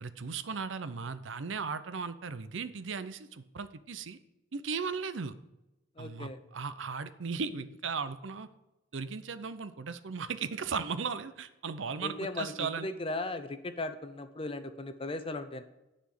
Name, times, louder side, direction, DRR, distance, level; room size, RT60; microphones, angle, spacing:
voice 1, 0.0-4.2 4.5-5.4 6.0-8.5 8.9-12.9, right 5 dB, 70° right, 13 dB, 0.6 m, -37 dB
voice 2, 6.0-6.4 12.0-15.6, left 2 dB, 30° left, 10 dB, 0.7 m, -37 dB
10.0 x 4.3 x 7.6 m, 0.96 s
head